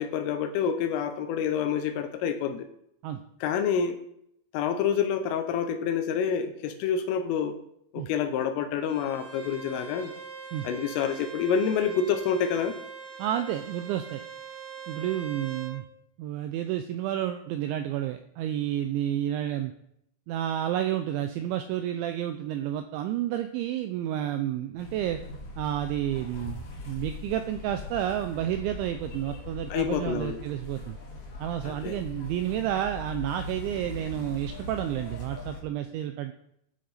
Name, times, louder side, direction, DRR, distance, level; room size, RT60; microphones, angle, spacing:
voice 1, 0.0-2.7 3.4-4.0 4.5-7.6 7.9-10.1 10.6-12.8 29.7-30.4 31.7-32.0, left 7 dB, 85° left, 7 dB, 3.4 m, -28 dB
Bowed string instrument, 8.8-15.8, right 6 dB, 60° right, 4.6 m, -42 dB
voice 2, 13.2-14.2 14.9-15.8 16.2-19.7 20.3-25.2 25.6-31.0 31.4-36.3, right 11 dB, 85° right, 7 dB, 2.7 m, -30 dB
sound 1, 24.8-35.6, left 2 dB, 60° left, 3.6 m, -41 dB
14.5 x 6.4 x 4.1 m, 0.73 s
omnidirectional pair, 5.8 m